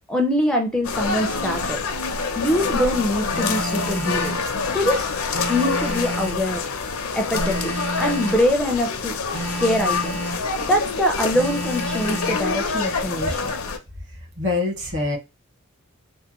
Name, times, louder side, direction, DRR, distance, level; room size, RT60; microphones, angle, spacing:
voice 1, 0.1-1.8 2.1-4.4 4.7-5.1 5.5-6.6 7.1-9.1 9.6-10.2 10.6-13.5, left 1 dB, 5° left, 2 dB, 0.4 m, -23 dB
sound 1, 0.8-13.8, left 4 dB, 70° left, 0.6 m, -26 dB
Telephone, 3.3-4.4 5.3-6.5 7.3-8.5 9.3-10.4 11.3-12.4, right 1 dB, 90° right, 1.9 m, -30 dB
voice 2, 14.4-15.2, left 3 dB, 55° right, 1 dB, 1.4 m, -24 dB
3.4 x 2.1 x 2.9 m, 0.25 s
head